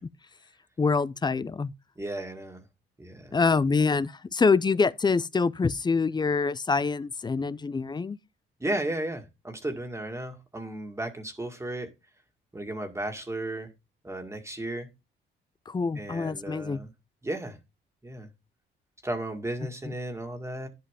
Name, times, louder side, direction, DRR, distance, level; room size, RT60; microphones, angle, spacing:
voice 1, 0.8-1.7 3.3-8.2 15.7-16.8, left 4 dB, 20° left, 0.5 m, -25 dB
voice 2, 2.0-2.6 3.0-3.4 8.6-11.9 12.5-13.7 14.0-14.9 16.0-16.9 17.2-17.6 18.0-18.3 19.0-20.7, right 1 dB, 15° right, 2.0 m, -34 dB
11.5 x 5.6 x 3.7 m
cardioid pair, 90°, 20 cm